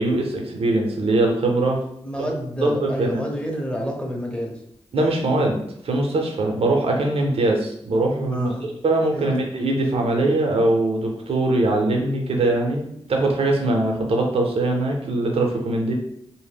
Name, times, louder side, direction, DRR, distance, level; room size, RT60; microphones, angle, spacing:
voice 1, 0.0-1.8 2.2-2.3 2.6-3.2 4.9-5.6 5.8-8.5 8.8-12.8 13.1-15.9, right 2 dB, 65° right, 1 dB, 0.6 m, -21 dB
voice 2, 2.0-4.6 8.3-8.7 9.1-9.3, equal, 10° left, 0 dB, 0.7 m, -29 dB
2.1 x 2.0 x 3.4 m, 0.70 s
cardioid pair, 45°, 11 cm